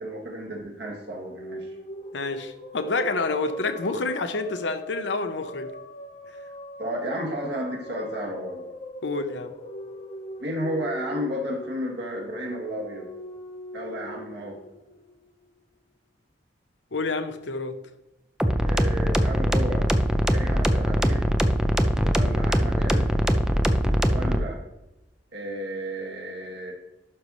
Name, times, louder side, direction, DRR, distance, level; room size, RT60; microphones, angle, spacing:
voice 1, 0.0-1.8 6.8-8.7 10.4-13.1 13.7-14.6 18.6-19.9 20.3-21.3 22.1-23.1 24.1-24.6 25.3-26.7, equal, 65° right, 2.0 m, -33 dB
sound 1, 1.0-15.5, equal, 40° left, 1.0 m, -41 dB
voice 2, 2.1-5.7 9.0-9.5 16.9-17.8, left 3 dB, 75° left, 0.8 m, -28 dB
sound 2, 18.4-24.4, equal, 5° right, 0.5 m, -22 dB
11.5 x 5.4 x 3.2 m
head